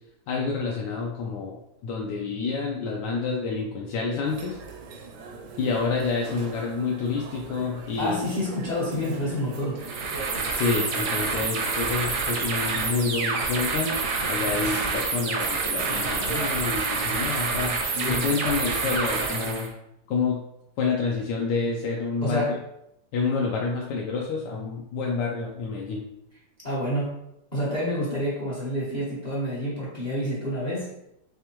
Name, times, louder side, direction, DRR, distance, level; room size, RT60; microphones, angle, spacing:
voice 1, 0.3-1.6 1.8-4.6 5.6-8.2 10.5-17.8 18.1-19.7 20.1-20.4 20.8-22.4 23.1-26.0, left 4 dB, 90° left, -1 dB, 1.2 m, -28 dB
sound 1, 4.2-19.5, right 4 dB, 80° right, 1.2 m, -40 dB
voice 2, 8.0-9.8 17.9-18.4 22.2-22.6 26.6-27.2 27.5-30.9, equal, 35° left, -6 dB, 0.8 m, -28 dB
sound 2, 9.8-19.7, right 4 dB, 60° right, 0.8 m, -28 dB
3.5 x 3.4 x 2.9 m, 0.82 s
omnidirectional pair, 1.8 m